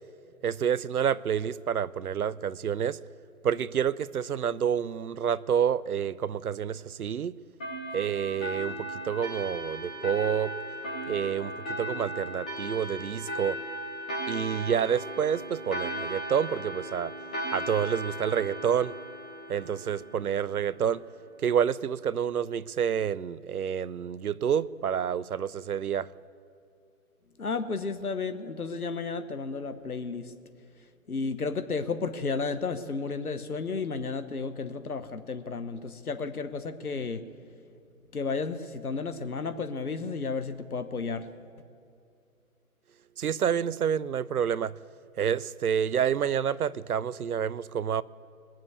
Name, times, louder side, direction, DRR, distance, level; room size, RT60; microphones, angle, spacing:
voice 1, 0.4-3.0 3.4-7.4 7.9-10.5 11.1-11.5 11.8-13.6 14.3-17.1 17.5-18.9 19.5-21.0 21.4-26.1 43.2-44.7 45.2-48.0, right 8 dB, 80° right, 19 dB, 0.6 m, -28 dB
sound 1, 7.6-20.7, equal, 5° left, 0.5 m, -37 dB
voice 2, 27.4-30.3 31.1-37.2 38.1-41.3, left 4 dB, 75° left, 10 dB, 1.2 m, -32 dB
20.5 x 7.4 x 8.3 m, 2.6 s
figure-of-eight pair, 135°, 44 cm